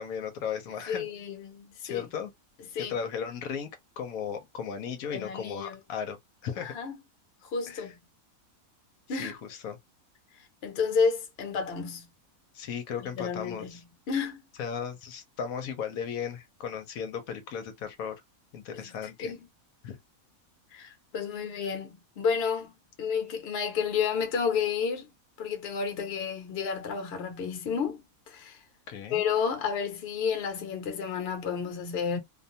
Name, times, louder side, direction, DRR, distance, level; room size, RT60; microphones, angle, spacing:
voice 1, 0.0-1.1 1.8-2.3 2.8-3.7 4.0-6.2 6.4-6.7 7.7-7.9 9.1-9.8 12.5-13.8 14.6-18.2 18.5-19.3 19.8-20.0 28.9-29.2, left 7 dB, 80° left, 1.1 m, -36 dB
voice 2, 0.9-2.1 2.7-2.9 5.1-5.8 6.6-6.9 7.5-8.0 9.1-9.4 10.6-12.1 13.0-13.8 14.1-14.4 18.7-18.8 19.2-19.4 20.7-22.7 23.0-25.1 25.4-28.0 28.3-28.6 29.1-32.2, left 6 dB, 50° left, 0.9 m, -31 dB
2.6 x 2.2 x 2.7 m
omnidirectional pair, 1.5 m